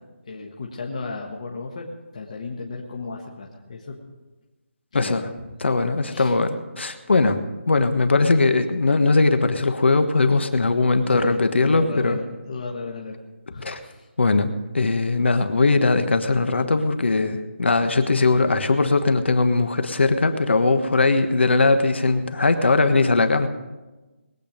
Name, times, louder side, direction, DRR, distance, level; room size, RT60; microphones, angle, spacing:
voice 1, 0.3-4.0 4.9-5.3 6.0-6.3 11.1-13.1 13.5-14.1, left 3 dB, 30° left, -1 dB, 1.4 m, -34 dB
voice 2, 5.6-7.4 7.7-12.2 13.6-13.8 14.2-14.5 14.7-23.5, left 3 dB, 60° left, 9 dB, 1.4 m, -20 dB
21.0 x 8.7 x 5.2 m, 1.1 s
figure-of-eight pair, 175°, 7 cm